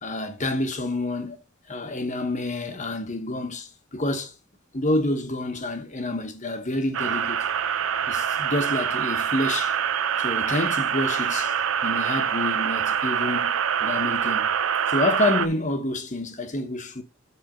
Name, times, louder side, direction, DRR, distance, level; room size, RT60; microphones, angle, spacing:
voice 1, 0.0-1.4 1.7-4.3 4.7-7.4 8.1-9.8 10.2-11.5 11.8-14.5 14.9-17.0, left 1 dB, 35° left, 1.2 m, -28 dB
sound 1, 6.9-15.5, right 8 dB, 65° right, 0.5 m, -25 dB
9.1 x 3.6 x 5.1 m
head